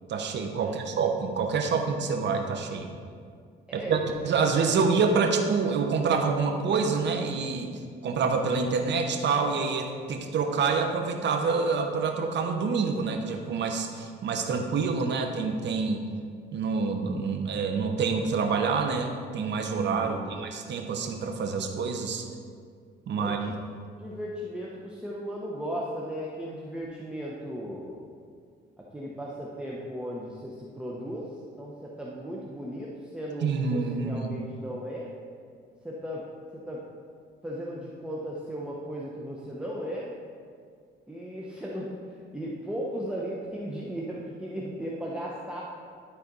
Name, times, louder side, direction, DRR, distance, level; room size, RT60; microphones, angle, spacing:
voice 1, 0.1-2.9 3.7-4.0 4.2-7.7 8.0-16.0 16.5-22.3 23.1-23.4 33.4-34.3, right 5 dB, 65° right, 4 dB, 0.9 m, -27 dB
voice 2, 3.7-4.4 20.0-20.4 23.2-23.5 24.0-28.0 28.8-35.2 35.8-36.9 37.4-40.1 41.1-45.6, equal, 5° right, -4 dB, 0.9 m, -36 dB
11.5 x 4.2 x 4.1 m, 2.1 s
cardioid pair, 90°, 20 cm